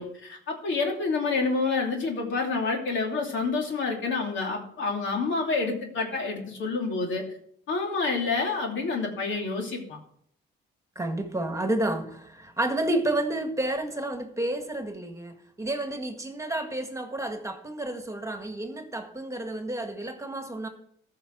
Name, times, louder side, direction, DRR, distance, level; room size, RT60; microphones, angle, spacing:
voice 1, 0.0-7.3 7.7-10.0, left 4 dB, 75° left, 2.8 m, -28 dB
voice 2, 11.0-20.7, right 1 dB, 15° right, 1.7 m, -30 dB
14.0 x 5.8 x 6.0 m
cardioid pair, 90°, 20 cm